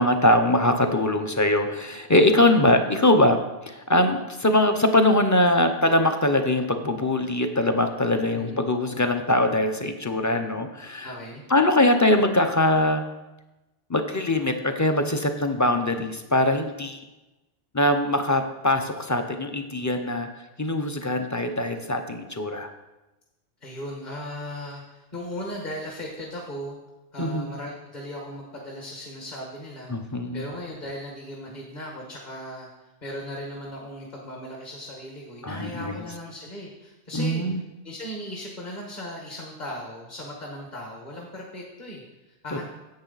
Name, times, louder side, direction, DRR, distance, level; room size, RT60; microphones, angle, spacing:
voice 1, 0.0-3.4 3.7-11.2 11.5-13.0 13.9-17.0 17.7-20.3 20.6-22.7 27.2-27.5 29.9-30.4 35.4-35.9 37.1-37.6, left 1 dB, 20° left, 6 dB, 0.5 m, -22 dB
voice 2, 8.3-8.6 11.0-11.4 23.6-26.8 27.1-32.7 33.0-42.6, left 1 dB, 40° left, -1 dB, 1.6 m, -37 dB
10.5 x 7.9 x 4.0 m, 1.0 s
omnidirectional pair, 1.2 m